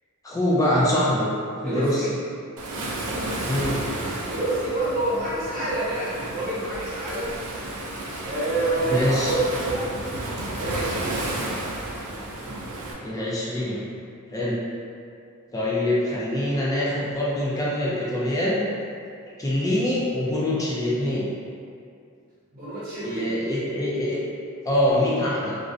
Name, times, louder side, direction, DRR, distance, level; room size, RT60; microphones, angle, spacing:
voice 1, 0.2-1.3 1.6-2.1 3.5-3.8 8.8-9.3 13.0-13.8 14.3-14.6 15.5-18.7 19.4-21.3 23.0-24.2 24.6-25.6, left 1 dB, 15° left, -6 dB, 0.3 m, -24 dB
voice 2, 1.6-2.1 4.3-7.4 8.2-9.9 10.6-11.3 22.5-23.7, right 2 dB, 45° right, -10 dB, 0.9 m, -27 dB
Waves surf, 2.6-12.9, right 1 dB, 85° right, 0.4 m, -32 dB
2.4 x 2.1 x 2.5 m, 2.4 s
head